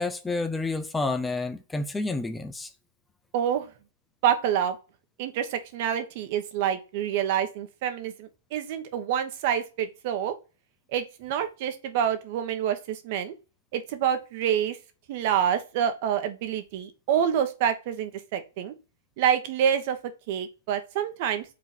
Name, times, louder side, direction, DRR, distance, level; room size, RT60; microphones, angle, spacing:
voice 1, 0.0-2.7, left 3 dB, 10° left, 0.6 m, -29 dB
voice 2, 3.3-3.7 4.2-4.8 5.2-10.3 10.9-13.3 13.7-14.8 15.1-18.7 19.2-20.0 20.3-21.4, right 9 dB, 50° right, 1.2 m, -27 dB
4.9 x 3.9 x 5.0 m
hypercardioid pair, 125°, 0 cm